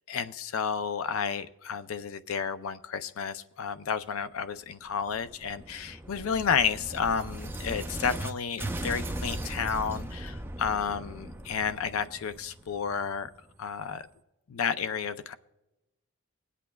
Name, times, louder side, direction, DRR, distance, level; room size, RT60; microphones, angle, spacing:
voice 1, 0.1-13.3 13.6-14.1 14.5-15.3, left 6 dB, 85° left, 13 dB, 0.5 m, -31 dB
sound 1, 4.9-8.3 8.6-13.3, right 1 dB, 10° right, 0.4 m, -38 dB
24.5 x 8.4 x 2.3 m, 0.98 s
head